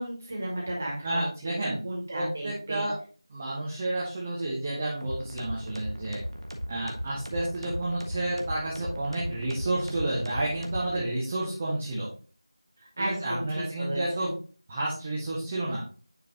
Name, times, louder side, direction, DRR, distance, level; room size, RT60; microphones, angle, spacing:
voice 1, 0.0-2.9 13.0-14.3, right 1 dB, 25° right, -3 dB, 2.0 m, -34 dB
voice 2, 1.0-1.8 2.1-3.0 3.3-6.2 6.7-12.1 13.0-14.3 14.7-15.8, right 1 dB, 5° right, -5 dB, 0.4 m, -30 dB
sound 1, 5.0-11.0, equal, 70° right, 1.4 m, -37 dB
9.9 x 3.7 x 2.7 m, 0.38 s
figure-of-eight pair, 175°, 3 cm